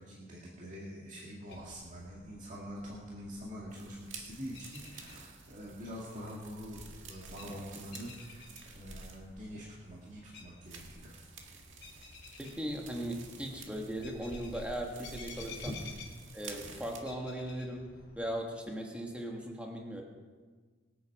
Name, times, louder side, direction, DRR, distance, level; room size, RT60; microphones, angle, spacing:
voice 1, 0.0-11.3 15.7-15.8, equal, 40° right, -5 dB, 2.2 m, -45 dB
sound 1, 1.5-18.4, left 2 dB, 55° left, 3.8 m, -52 dB
sound 2, 3.7-9.4 9.9-10.0 10.7-17.0, right 6 dB, 75° right, 1.8 m, -52 dB
voice 2, 12.4-15.7 16.3-20.0, equal, 5° right, 0 dB, 1.6 m, -38 dB
24.0 x 8.4 x 4.9 m, 1.5 s
head